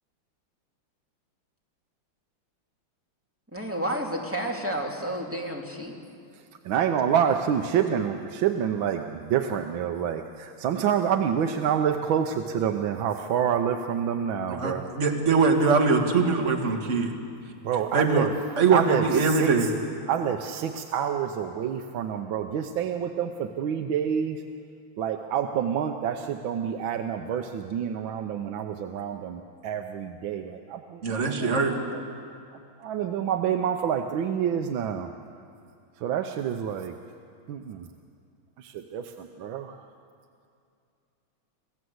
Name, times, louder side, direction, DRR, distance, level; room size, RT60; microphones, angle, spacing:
voice 1, 3.5-6.0, right 1 dB, 5° right, -1 dB, 2.4 m, -31 dB
voice 2, 6.6-14.9 17.6-18.3 18.7-19.5 20.1-24.4 25.0-32.0 32.8-35.1 36.0-36.9 37.5-37.9 38.6-39.8, right 8 dB, 70° right, 5 dB, 1.5 m, -28 dB
voice 3, 14.5-17.1 17.9-18.3 18.6-19.7 31.0-31.8, right 4 dB, 35° right, 2 dB, 2.1 m, -22 dB
27.5 x 15.5 x 7.9 m, 2.5 s
omnidirectional pair, 2.4 m